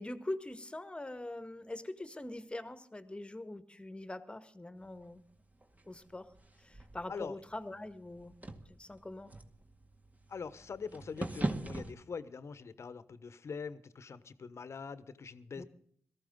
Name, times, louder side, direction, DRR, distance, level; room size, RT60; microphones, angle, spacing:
voice 1, 0.0-5.2 5.9-6.3 6.6-8.4 8.7-9.3 15.6-15.7, left 1 dB, 20° left, 11 dB, 1.6 m, -43 dB
sound 1, 4.8-11.9, right 1 dB, 30° right, 2.1 m, -42 dB
voice 2, 10.3-15.6, left 5 dB, 55° left, 14 dB, 1.2 m, -43 dB
18.0 x 14.5 x 3.8 m, 0.63 s
supercardioid pair, 45°, 6 cm